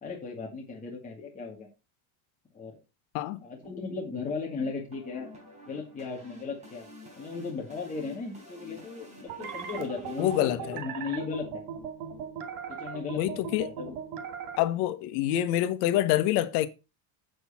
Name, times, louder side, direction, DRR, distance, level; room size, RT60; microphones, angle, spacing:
voice 1, 0.0-1.7 2.5-2.8 3.4-5.3 5.7-6.9 7.2-11.6 12.7-13.9, left 4 dB, 15° left, 2.2 m, -36 dB
sound 1, 3.6-10.5, left 1 dB, 15° right, 4.3 m, -50 dB
sound 2, 9.3-14.6, right 7 dB, 85° right, 2.5 m, -39 dB
voice 2, 10.2-10.8 13.2-13.7 14.6-16.7, left 13 dB, 80° left, 1.3 m, -26 dB
8.1 x 7.7 x 4.2 m
cardioid pair, 160°, 44 cm